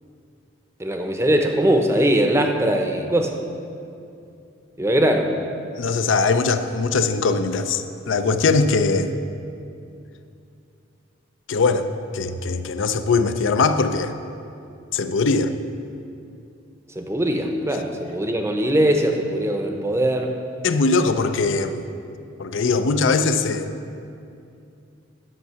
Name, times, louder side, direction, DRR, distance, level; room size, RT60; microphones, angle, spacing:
voice 1, 0.8-3.4 4.8-5.3 17.0-20.3, right 1 dB, 15° right, 4 dB, 0.6 m, -21 dB
voice 2, 5.7-9.1 11.5-11.9 12.1-14.1 14.9-15.5 20.6-21.8 22.4-23.7, left 4 dB, 75° left, 9 dB, 0.5 m, -21 dB
11.0 x 5.8 x 6.9 m, 2.6 s
head